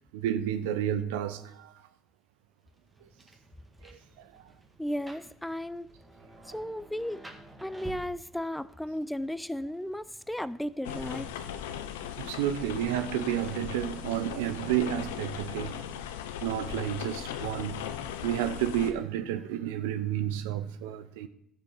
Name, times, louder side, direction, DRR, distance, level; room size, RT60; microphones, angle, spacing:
voice 1, 0.1-1.7 3.8-4.4 12.2-15.8 16.4-17.8 18.2-21.3, right 11 dB, 85° right, 0.6 m, -31 dB
Rain, 2.7-11.7, right 2 dB, 15° right, 1.9 m, -52 dB
voice 2, 4.8-5.9 6.5-7.2 7.6-11.3, left 1 dB, 5° left, 0.5 m, -35 dB
sound 1, 10.8-18.9, left 9 dB, 85° left, 0.6 m, -38 dB
12.5 x 7.0 x 5.6 m
hypercardioid pair, 60°, 0 cm